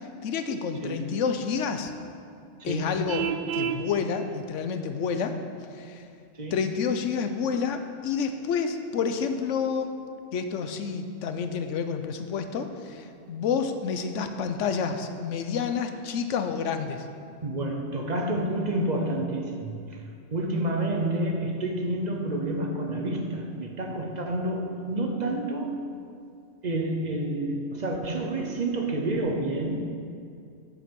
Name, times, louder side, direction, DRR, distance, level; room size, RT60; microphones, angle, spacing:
voice 1, 0.2-1.9 2.6-5.4 5.7-6.0 6.5-9.9 10.3-17.1, left 6 dB, 90° left, 8 dB, 1.0 m, -29 dB
voice 2, 0.8-1.2 2.6-3.0 6.3-6.7 17.4-20.0 20.3-26.0 26.6-29.8, right 1 dB, 40° right, 3 dB, 0.9 m, -29 dB
Vehicle horn car horn honking, 3.1-3.9, right 9 dB, 60° right, 0.6 m, -29 dB
9.5 x 7.5 x 5.3 m, 2.4 s
omnidirectional pair, 1.2 m